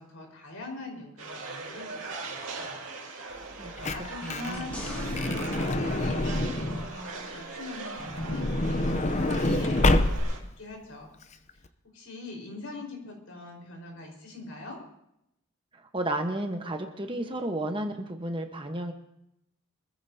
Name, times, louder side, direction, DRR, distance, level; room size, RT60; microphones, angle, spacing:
voice 1, 0.0-2.9 3.5-11.1 11.9-14.8, left 2 dB, 75° left, 0 dB, 4.7 m, -42 dB
sound 1, 1.2-10.4, right 3 dB, 60° right, 2.6 m, -40 dB
Truck / Door, 3.4-7.0 8.0-10.5 11.2-11.3 11.5-11.7, left 2 dB, 30° left, 0.7 m, -27 dB
voice 2, 3.6-3.9 4.2-4.7 15.7-18.9, right 1 dB, 25° right, 4 dB, 1.2 m, -33 dB
sound 2, 4.5-7.0 10.2-10.3, equal, 5° left, 3.2 m, -44 dB
25.0 x 14.5 x 2.8 m, 0.79 s
head